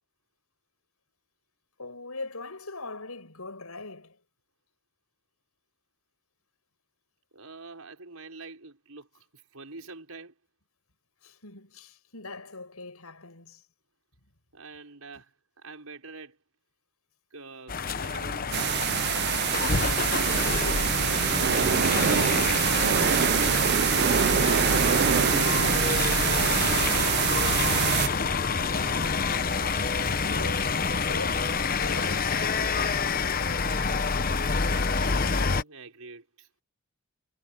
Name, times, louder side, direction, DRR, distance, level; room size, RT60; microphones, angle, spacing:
voice 1, 1.8-4.2 11.2-13.6 21.8-23.4 30.3-30.8 31.1-33.3, left 3 dB, 90° left, 7.3 m, -41 dB
voice 2, 7.3-10.3 14.5-16.4 17.3-20.1 25.5-27.1 28.5-29.3 35.3-36.5, right 3 dB, 85° right, 5.4 m, -46 dB
sound 1, 17.7-35.6, left 4 dB, 40° left, 1.0 m, -27 dB
sound 2, 17.9-29.8, equal, 60° left, 7.5 m, -47 dB
sound 3, 18.5-28.1, right 9 dB, 50° right, 0.3 m, -25 dB
head